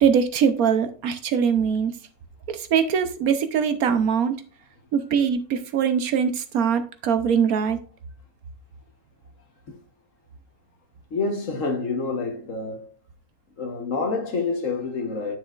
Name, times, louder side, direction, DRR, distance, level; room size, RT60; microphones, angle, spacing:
voice 1, 0.0-1.9 2.5-4.3 4.9-7.8, right 7 dB, 75° right, 1.2 m, -22 dB
voice 2, 11.1-12.9 13.6-15.4, left 4 dB, 60° left, 1.5 m, -27 dB
10.0 x 6.3 x 2.5 m
omnidirectional pair, 1.6 m